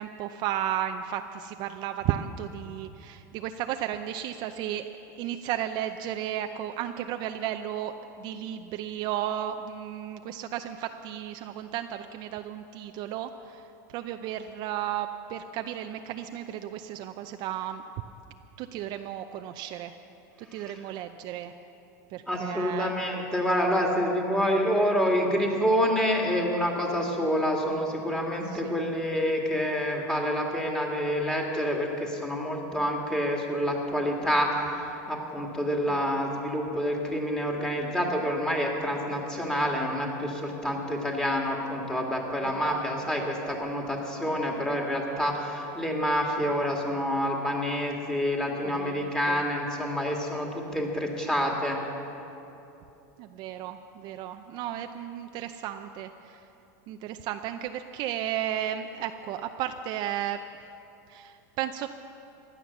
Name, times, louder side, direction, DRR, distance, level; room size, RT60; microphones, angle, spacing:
voice 1, 0.0-4.9 5.2-13.3 13.9-17.8 18.6-19.9 20.5-21.5 22.1-22.9 28.5-28.9 35.9-36.0 42.4-42.8 48.6-49.4 53.2-56.1 56.9-60.4 61.1-61.9, right 11 dB, 50° right, 7 dB, 0.6 m, -34 dB
voice 2, 22.3-51.8, equal, 5° left, 0 dB, 2.2 m, -27 dB
15.5 x 11.0 x 7.2 m, 2.9 s
supercardioid pair, 130°, 10 cm